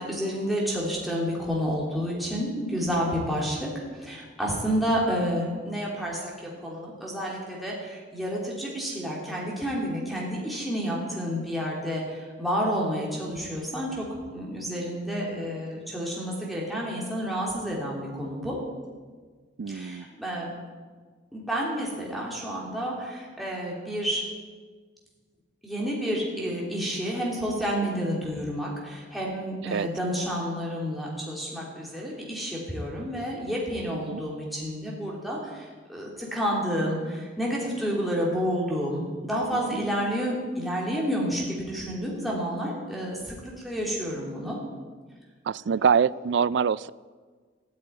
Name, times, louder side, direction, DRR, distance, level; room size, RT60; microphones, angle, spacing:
voice 1, 0.0-14.1 14.3-18.6 19.7-20.5 21.3-24.2 25.6-44.6, equal, ahead, -5 dB, 3.3 m, -30 dB
voice 2, 19.6-20.1 29.7-29.9 33.9-34.2 39.5-39.8 45.5-46.9, right 6 dB, 65° right, 19 dB, 0.4 m, -25 dB
15.0 x 9.4 x 9.4 m, 1.5 s
head